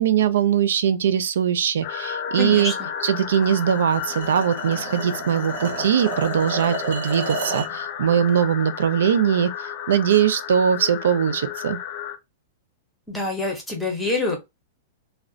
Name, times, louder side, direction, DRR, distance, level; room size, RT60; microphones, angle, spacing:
voice 1, 0.0-2.7 3.0-11.8, right 8 dB, 85° right, 0.4 m, -21 dB
sound 1, 1.8-12.2, left 9 dB, 35° left, 0.4 m, -33 dB
voice 2, 2.3-2.9 13.1-14.4, left 2 dB, 5° left, 0.7 m, -26 dB
sound 2, 3.4-7.8, right 3 dB, 65° right, 0.7 m, -32 dB
2.4 x 2.1 x 3.7 m
supercardioid pair, 175°, 0 cm